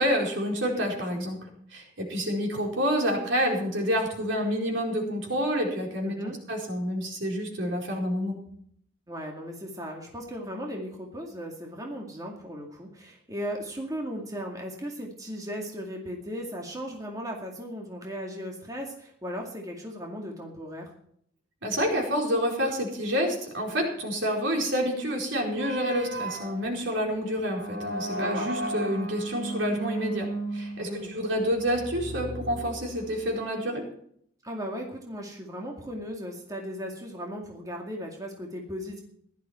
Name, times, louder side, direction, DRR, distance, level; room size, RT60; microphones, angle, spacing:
voice 1, 0.0-1.4 1.7-8.4 21.6-33.8, equal, 75° right, 0 dB, 4.6 m, -28 dB
voice 2, 6.0-6.4 9.1-20.9 28.1-28.5 30.8-31.1 34.4-39.0, equal, 20° right, 0 dB, 2.2 m, -37 dB
sound 1, 25.6-33.3, right 1 dB, 60° right, 2.6 m, -35 dB
15.5 x 12.0 x 4.4 m, 0.65 s
head